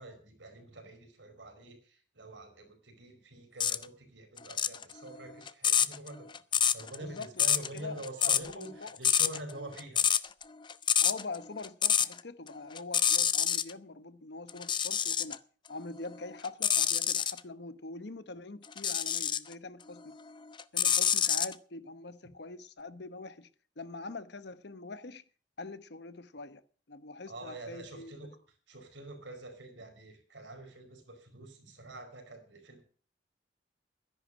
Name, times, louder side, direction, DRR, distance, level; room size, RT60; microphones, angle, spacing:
voice 1, 0.0-6.3 6.5-10.1 27.3-28.4 28.7-32.8, right 2 dB, 80° right, 4.6 m, -46 dB
sound 1, 3.6-3.8 4.4-12.2 12.5-13.7 14.5-15.4 15.9-17.4 18.7-19.5 20.0-21.5, left 8 dB, 25° left, 0.5 m, -27 dB
voice 2, 7.0-9.0 11.0-15.4 15.7-20.1 20.7-23.5 23.8-25.2 25.6-26.6 26.9-28.3, left 3 dB, 60° left, 1.0 m, -44 dB
12.5 x 10.5 x 6.3 m
head